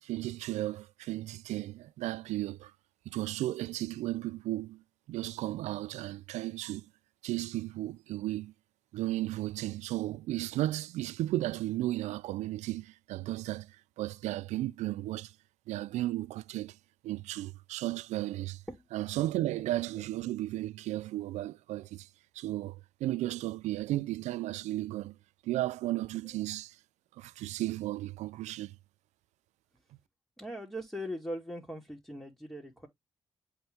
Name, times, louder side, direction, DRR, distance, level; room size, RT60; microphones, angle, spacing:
voice 1, 0.0-2.7 3.1-6.9 7.2-8.5 8.9-15.3 15.7-16.8 17.0-18.6 18.9-22.1 22.3-25.2 25.4-26.8 27.2-28.8, right 16 dB, 80° right, 0.4 m, -34 dB
voice 2, 30.4-32.9, equal, 5° left, 2.5 m, -40 dB
7.8 x 3.6 x 3.4 m
hypercardioid pair, 40°, 12 cm